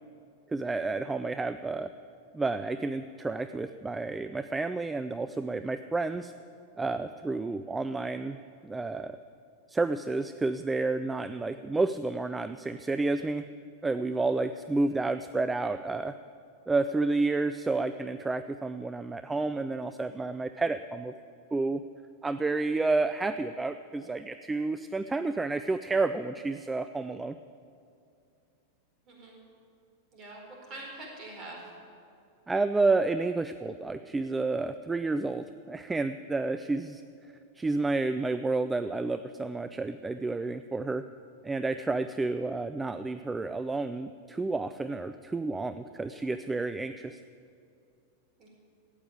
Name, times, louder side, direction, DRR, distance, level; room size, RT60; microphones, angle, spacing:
voice 1, 0.5-1.9 2.3-6.3 6.8-8.4 8.6-9.2 9.7-13.5 13.8-16.2 16.7-21.1 21.5-21.8 22.2-27.4 32.5-37.0 37.6-41.0 41.4-47.2, right 3 dB, 10° right, 11 dB, 0.4 m, -30 dB
voice 2, 29.1-29.4 30.1-31.7 48.4-48.5, right 2 dB, 35° right, -1 dB, 4.4 m, -44 dB
13.0 x 9.0 x 8.8 m, 2.5 s
figure-of-eight pair, 90°, 0 cm